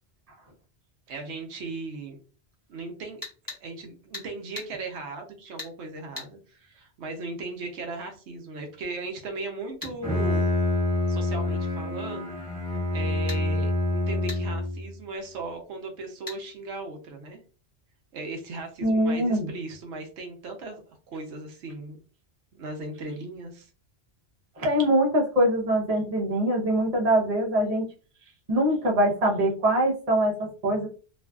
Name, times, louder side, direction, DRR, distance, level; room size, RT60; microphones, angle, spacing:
voice 1, 1.1-2.2 2.7-10.5 11.1-12.3 12.9-17.4 18.1-22.0 22.5-23.7, right 3 dB, 85° right, 3 dB, 0.9 m, -37 dB
sound 1, 3.2-3.6 4.1-4.3 4.6-4.7 5.6-5.7 6.2-6.3 9.8-10.0 13.3-13.4 14.3-14.4 16.3-16.4, left 2 dB, 20° left, 0.9 m, -38 dB
Bowed string instrument, 9.8-14.9, left 1 dB, 15° right, 1.2 m, -27 dB
voice 2, 18.8-19.5 24.6-27.8 28.5-30.9, right 1 dB, 40° right, -1 dB, 0.8 m, -23 dB
2.6 x 2.4 x 2.2 m, 0.36 s
omnidirectional pair, 1.1 m